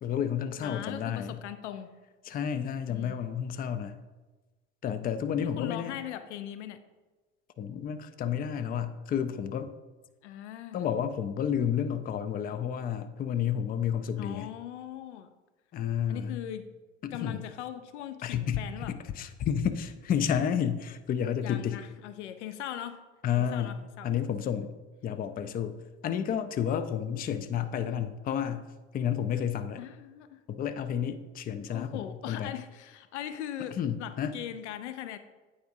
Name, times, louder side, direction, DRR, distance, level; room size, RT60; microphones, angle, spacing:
voice 1, 0.0-1.3 2.3-4.0 4.8-5.9 7.6-9.7 10.7-14.5 15.7-16.4 17.0-17.4 18.2-21.8 23.2-23.8 24.0-24.7 25.0-28.6 28.9-29.8 30.5-32.5 33.8-34.4, left 8 dB, 25° left, 11 dB, 0.4 m, -31 dB
voice 2, 0.6-1.9 2.9-3.2 4.9-6.8 10.2-10.8 14.2-15.3 16.1-16.7 17.1-19.0 21.4-23.0 23.4-24.1 24.4-24.7 29.8-30.4 31.7-35.2, left 11 dB, 75° left, 11 dB, 0.5 m, -40 dB
9.0 x 4.9 x 2.6 m, 1.2 s
hypercardioid pair, 65°, 35 cm